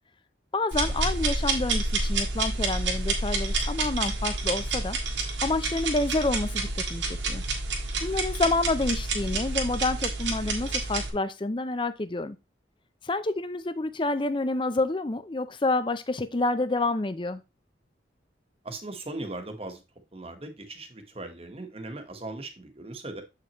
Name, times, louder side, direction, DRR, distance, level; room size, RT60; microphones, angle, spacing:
voice 1, 0.5-5.0 5.4-7.4 8.0-12.4 13.0-17.4, left 2 dB, 25° left, 0.5 m, -28 dB
sound 1, 0.7-11.1, right 3 dB, 80° right, 2.1 m, -29 dB
voice 2, 18.6-19.8 20.1-23.2, right 2 dB, 30° right, 1.2 m, -38 dB
7.9 x 5.9 x 3.0 m
head